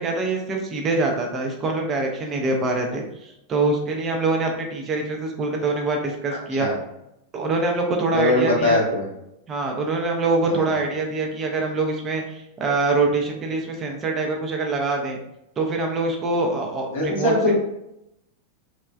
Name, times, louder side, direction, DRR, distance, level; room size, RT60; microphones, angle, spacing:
voice 1, 0.0-6.7 7.3-8.8 9.5-15.2 15.6-17.3, right 3 dB, 25° right, 1 dB, 0.5 m, -24 dB
voice 2, 8.1-9.0 10.5-10.7 16.9-17.5, left 1 dB, 60° left, -3 dB, 0.7 m, -21 dB
3.1 x 2.1 x 2.3 m, 0.84 s
figure-of-eight pair, 90°, 0 cm